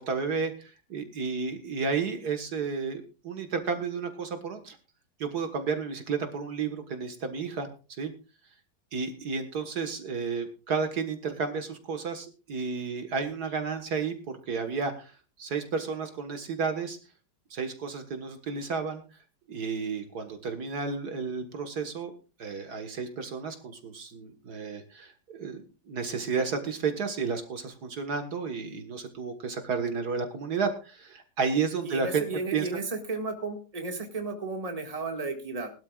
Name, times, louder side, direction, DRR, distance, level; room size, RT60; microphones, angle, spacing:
voice 1, 0.1-4.8 5.2-7.7 8.0-8.1 8.9-15.1 15.4-17.0 17.5-19.0 19.5-22.1 22.4-32.2 32.5-32.7, right 5 dB, 65° right, 7 dB, 2.0 m, -32 dB
voice 2, 31.8-35.7, right 3 dB, 20° right, 4 dB, 1.9 m, -33 dB
20.5 x 12.5 x 2.4 m, 0.33 s
omnidirectional pair, 1.8 m